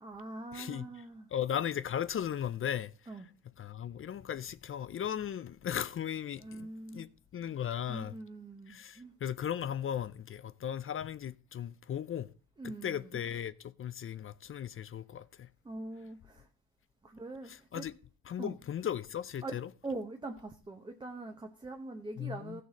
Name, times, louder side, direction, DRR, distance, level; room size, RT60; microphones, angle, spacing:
voice 1, 0.0-1.3 3.1-3.3 6.4-7.0 7.9-9.1 12.6-13.1 15.6-16.5 17.0-17.9 18.4-18.5 19.4-19.6 19.8-22.6, right 2 dB, 10° right, 0.8 m, -43 dB
voice 2, 0.5-0.9 1.3-2.9 3.6-6.7 6.9-8.1 8.7-12.3 12.6-15.5 17.5-17.9 18.3-19.7 22.2-22.6, left 9 dB, 35° left, 0.4 m, -37 dB
16.0 x 6.5 x 4.0 m
cardioid pair, 165°, 37 cm